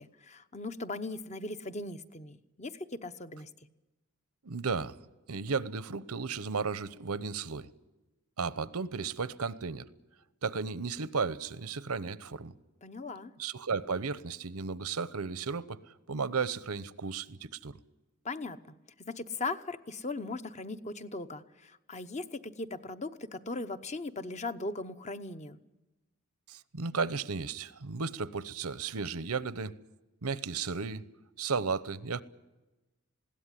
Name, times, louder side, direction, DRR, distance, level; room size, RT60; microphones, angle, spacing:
voice 1, 0.0-3.5 12.8-13.3 18.2-18.6 19.0-25.6, left 3 dB, 30° left, 0.9 m, -39 dB
voice 2, 4.4-5.0 5.3-7.7 8.4-9.8 10.4-12.5 13.4-15.8 16.1-17.8 26.5-29.8 30.2-31.0 31.4-32.2, right 5 dB, 85° right, 0.9 m, -34 dB
21.0 x 17.0 x 9.9 m
head